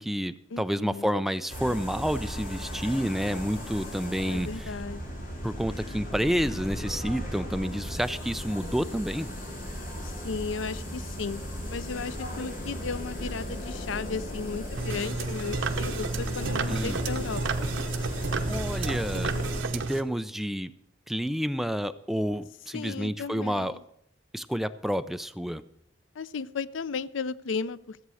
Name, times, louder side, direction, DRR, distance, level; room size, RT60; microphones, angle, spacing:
voice 1, 0.0-4.7 5.4-9.3 16.7-17.0 18.4-19.3 19.7-20.7 21.1-23.8 24.3-25.6, equal, ahead, 0.4 m, -29 dB
voice 2, 0.5-1.2 4.3-5.0 10.2-11.4 11.7-17.7 22.7-23.8 26.2-28.1, left 4 dB, 85° left, 0.5 m, -35 dB
sound 1, 1.5-19.6, equal, 45° left, 2.7 m, -36 dB
sound 2, 14.7-20.0, right 3 dB, 85° right, 1.0 m, -31 dB
14.5 x 8.1 x 6.3 m
head